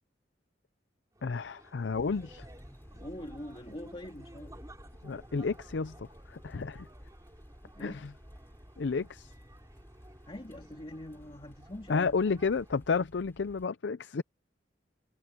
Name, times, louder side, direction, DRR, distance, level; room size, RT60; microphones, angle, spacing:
sound 1, 1.1-12.9, right 1 dB, 20° right, 3.4 m, -57 dB
voice 1, 1.2-2.5 5.0-6.9 7.8-8.1 8.8-9.3 11.9-14.2, left 4 dB, 70° left, 0.5 m, -31 dB
sound 2, 1.9-13.7, equal, 15° left, 3.3 m, -53 dB
voice 2, 2.9-4.5 7.6-8.1 10.2-12.2, left 1 dB, 30° left, 2.1 m, -44 dB
head